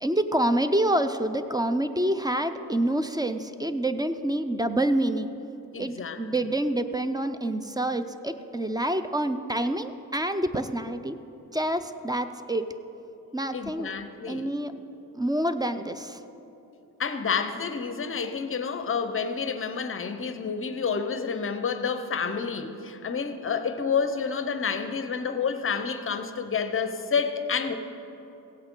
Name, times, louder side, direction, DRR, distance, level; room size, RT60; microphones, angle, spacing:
voice 1, 0.0-5.3 5.8-11.2 11.5-12.8 13.3-13.9 14.3-14.7 15.1-16.2, right 1 dB, 10° right, 10 dB, 0.4 m, -27 dB
voice 2, 5.7-6.2 13.5-14.5 17.0-27.7, left 6 dB, 35° left, 9 dB, 0.7 m, -29 dB
16.5 x 8.7 x 3.7 m, 3.0 s
cardioid pair, 105°, 36 cm